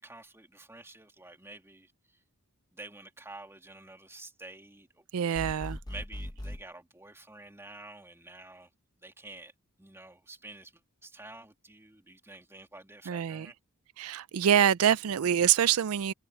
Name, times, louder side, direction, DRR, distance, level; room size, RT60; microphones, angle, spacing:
voice 1, 0.0-2.2 2.7-5.5 5.9-8.7 9.0-9.5 9.8-13.5, right 2 dB, 10° right, 2.6 m, -49 dB
voice 2, 5.1-5.8 13.1-13.5 14.0-16.1, right 9 dB, 70° right, 0.4 m, -25 dB
sound 1, 5.3-6.6, left 1 dB, 20° left, 1.0 m, -39 dB
head